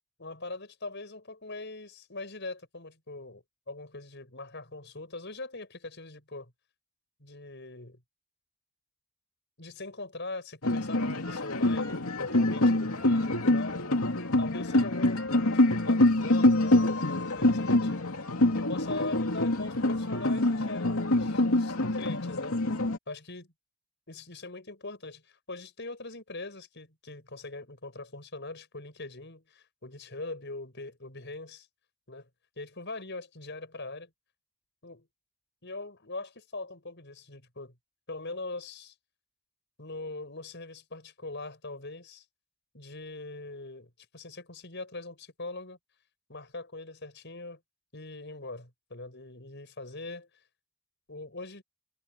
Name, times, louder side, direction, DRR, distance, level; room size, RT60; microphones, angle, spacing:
voice 1, 0.2-6.5 7.2-8.0 9.6-14.0 14.4-18.1 18.5-22.6 23.1-23.5 24.1-31.7 32.1-32.3 32.6-34.1 34.8-35.1 35.6-37.7 38.1-38.9 39.8-42.2 42.7-45.8 46.3-47.6 47.9-50.3 51.1-51.6, left 2 dB, 50° left, 6.3 m, -42 dB
sound 1, 10.6-23.0, left 1 dB, 75° left, 2.8 m, -25 dB
head